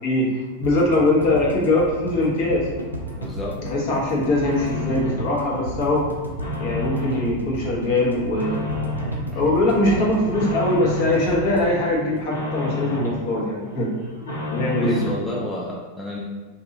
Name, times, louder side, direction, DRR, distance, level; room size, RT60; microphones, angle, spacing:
voice 1, 0.0-2.7 3.6-6.1 6.6-8.7 9.3-13.9 14.5-15.2, left 1 dB, 45° left, -3 dB, 1.0 m, -22 dB
sound 1, 0.6-12.8 13.1-13.2 13.4-13.5, equal, 80° right, 0.5 m, -33 dB
sound 2, 2.5-3.3 3.8-5.3 5.7-7.3 7.7-9.3 9.7-11.3 11.6-13.2 13.6-15.2, left 2 dB, 75° left, 0.8 m, -31 dB
voice 2, 3.2-3.6 9.3-9.5 14.8-16.2, left 1 dB, 5° left, -4 dB, 0.4 m, -31 dB
2.9 x 2.6 x 3.8 m, 1.4 s
figure-of-eight pair, 90°, 0 cm